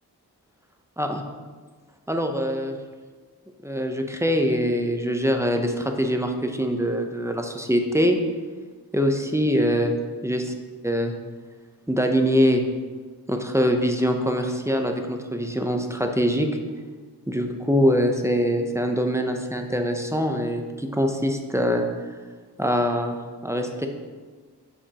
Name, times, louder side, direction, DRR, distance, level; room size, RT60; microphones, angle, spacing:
voice 1, 2.1-2.8 3.6-8.2 8.9-10.0 10.2-10.5 10.8-11.1 11.9-12.6 13.3-16.5 17.3-21.8 22.6-23.2 23.4-23.9, equal, 5° right, 4 dB, 0.7 m, -23 dB
8.3 x 5.2 x 3.0 m, 1.5 s
cardioid pair, 50°, 40 cm